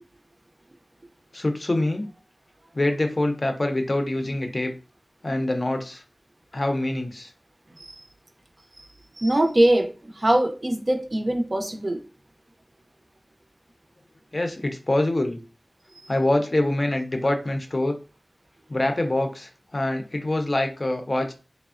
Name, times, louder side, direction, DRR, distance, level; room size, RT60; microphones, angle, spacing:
voice 1, 1.3-2.0 2.7-4.7 5.2-6.0 6.5-7.3 14.3-15.4 16.1-18.0 18.7-21.3, left 1 dB, 45° left, 0.5 m, -25 dB
voice 2, 9.2-12.0 15.9-16.0, right 1 dB, 45° right, 0.5 m, -23 dB
3.3 x 2.0 x 2.4 m
wide cardioid pair, 65°, 0 cm